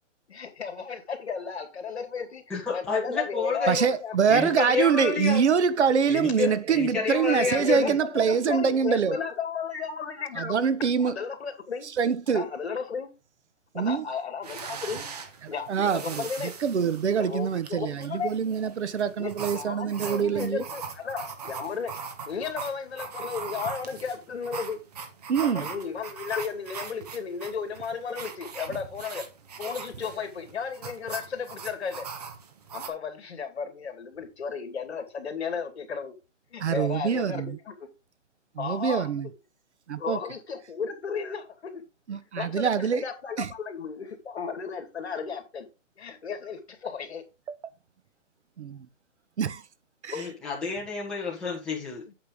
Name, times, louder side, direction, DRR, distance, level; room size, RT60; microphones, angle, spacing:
voice 1, 0.3-4.2 4.4-4.6 7.5-10.6 11.0-11.9 12.3-13.1 13.7-15.1 15.5-16.6 17.2-18.3 19.2-21.9 22.3-24.8 25.4-29.3 29.6-32.1 32.7-36.2 36.5-37.7 38.6-39.1 40.0-41.8 42.4-45.7 46.0-47.2 50.1-50.3 52.1-52.2, left 6 dB, 60° left, 2.5 m, -34 dB
voice 2, 2.5-3.8 4.3-5.4 6.1-8.0 50.1-52.0, left 5 dB, ahead, 1.4 m, -29 dB
voice 3, 3.7-9.2 10.4-11.2 12.0-12.5 13.7-14.0 15.7-20.6 25.3-25.7 36.6-37.6 38.6-39.3 39.9-40.2 42.1-43.0 43.4-43.5 48.6-48.8 49.4-49.6 50.0-50.1, right 7 dB, 60° right, 1.0 m, -25 dB
sound 1, 14.4-32.9, right 5 dB, 30° right, 1.2 m, -40 dB
8.8 x 6.7 x 3.8 m
hypercardioid pair, 170°, 38 cm